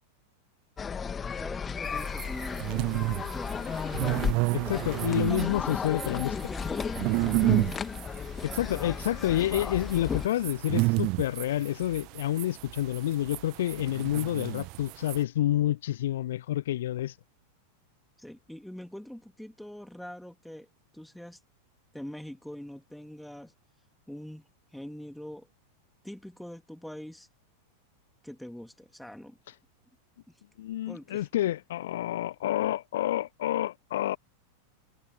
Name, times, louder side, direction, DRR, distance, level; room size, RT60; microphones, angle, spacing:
sound 1, 0.8-10.3, left 6 dB, 20° left, 1.8 m, -34 dB
voice 1, 1.0-3.7 4.7-7.9 18.2-20.7 20.9-21.4 21.9-25.5 26.0-27.3 28.2-29.4 30.3-30.4 30.9-31.3, left 1 dB, ahead, 2.2 m, -44 dB
sound 2, 1.9-15.2, right 27 dB, 40° right, 0.9 m, -31 dB
voice 2, 4.5-6.4 8.4-17.2 30.6-34.2, left 13 dB, 60° left, 1.0 m, -29 dB
figure-of-eight pair, 90°, 0 cm